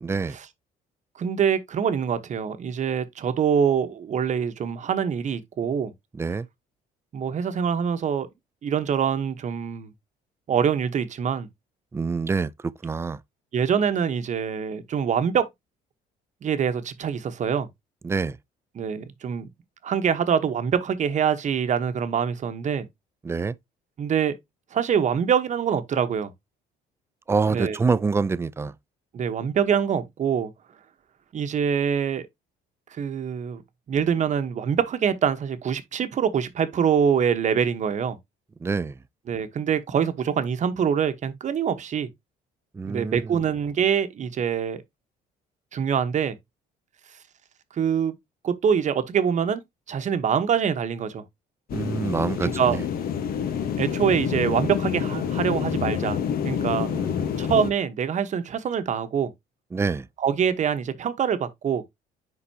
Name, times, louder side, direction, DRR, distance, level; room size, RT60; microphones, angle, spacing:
voice 1, 0.0-0.3 6.2-6.5 11.9-13.2 18.0-18.3 23.2-23.5 27.3-28.7 38.6-38.9 42.8-43.2 51.7-52.8 56.8-57.3 59.7-60.1, right 4 dB, 15° right, 0.4 m, -26 dB
voice 2, 1.2-5.9 7.1-8.3 8.6-9.9 10.5-11.5 13.5-15.5 16.4-17.7 18.7-19.5 19.8-22.9 24.0-24.3 24.7-26.3 27.5-27.8 29.1-30.5 31.3-32.2 32.9-33.6 33.9-38.2 39.3-42.1 42.8-44.8 45.7-46.4 47.8-48.1 48.4-49.6 49.9-51.2 52.4-52.8 53.8-56.2 56.4-56.9 57.4-59.3 60.2-61.8, right 7 dB, 45° right, 1.1 m, -24 dB
sound 1, 51.7-57.7, left 8 dB, 60° left, 1.3 m, -27 dB
10.0 x 4.1 x 2.8 m
cardioid pair, 110°, 17 cm